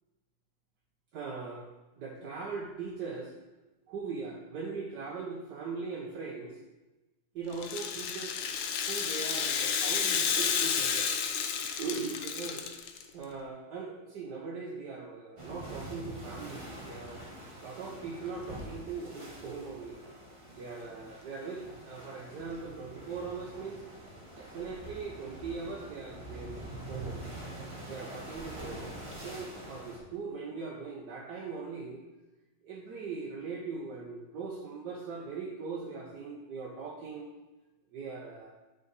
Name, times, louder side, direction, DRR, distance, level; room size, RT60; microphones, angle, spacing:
voice 1, 1.1-1.7 2.0-3.3 3.9-6.6 7.3-8.4 8.7-11.1 11.8-12.6 13.1-17.2 17.6-20.0 20.6-23.8 24.4-27.3 27.9-32.0 32.6-37.3 37.9-38.5, right 4 dB, 65° right, -3 dB, 1.3 m, -40 dB
Rattle (instrument), 7.5-13.0, left 7 dB, 75° left, 1.4 m, -31 dB
sound 1, 15.4-30.0, right 1 dB, 25° right, 0.6 m, -45 dB
8.9 x 4.0 x 4.0 m, 1.1 s
omnidirectional pair, 2.2 m